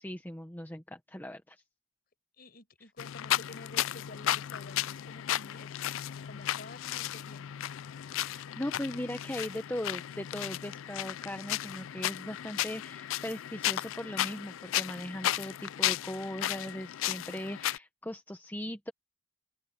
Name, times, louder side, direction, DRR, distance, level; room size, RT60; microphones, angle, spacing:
voice 1, 0.0-1.6 8.2-18.9, left 1 dB, 10° left, 1.1 m, -39 dB
voice 2, 2.4-5.8 6.2-7.6, left 2 dB, 45° left, 6.4 m, -50 dB
sound 1, 3.0-17.8, left 13 dB, 70° left, 0.3 m, -34 dB
head